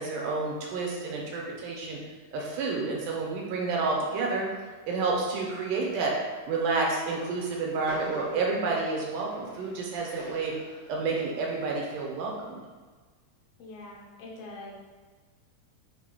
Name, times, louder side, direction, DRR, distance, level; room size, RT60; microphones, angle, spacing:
voice 1, 0.0-2.0 2.3-4.4 4.9-6.1 6.5-10.5 10.9-12.6, right 4 dB, 80° right, -2 dB, 2.3 m, -29 dB
voice 2, 4.1-4.5 13.6-14.7, left 2 dB, 85° left, -3 dB, 2.3 m, -43 dB
Train, 7.2-12.5, left 1 dB, 70° left, 1.7 m, -46 dB
5.6 x 2.3 x 3.6 m, 1.4 s
omnidirectional pair, 3.7 m